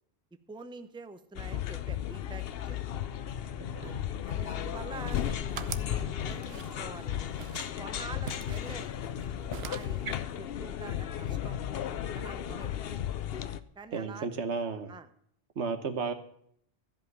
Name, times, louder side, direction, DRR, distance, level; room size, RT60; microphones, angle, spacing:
voice 1, 0.5-2.8 3.8-7.3 7.8-8.9 9.6-11.6 12.1-12.8 13.8-14.3 14.9-15.1, right 3 dB, 5° right, 9 dB, 0.6 m, -46 dB
sound 1, 1.4-13.6, left 10 dB, 65° left, 0.8 m, -35 dB
sound 2, 4.9-6.0 6.3-7.0 7.4-7.8 8.3-9.2 9.5-10.0, right 8 dB, 65° right, 1.0 m, -43 dB
voice 2, 13.9-14.9 15.6-16.1, right 5 dB, 85° right, 8 dB, 1.5 m, -33 dB
14.0 x 5.3 x 9.4 m, 0.67 s
omnidirectional pair, 1.1 m